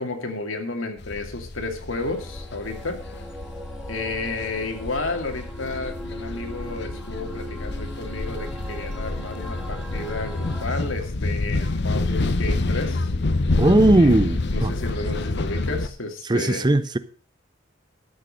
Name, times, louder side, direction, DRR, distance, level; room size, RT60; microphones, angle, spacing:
voice 1, 0.0-3.0 3.9-13.0 14.0-14.1 14.5-16.6, left 3 dB, 75° left, 2.4 m, -32 dB
sound 1, 1.0-15.9, left 2 dB, 55° left, 0.8 m, -28 dB
sound 2, 1.9-10.7, right 1 dB, 5° right, 1.7 m, -40 dB
voice 2, 13.6-14.7 16.3-17.0, right 2 dB, 20° right, 0.5 m, -18 dB
13.0 x 6.6 x 6.3 m
head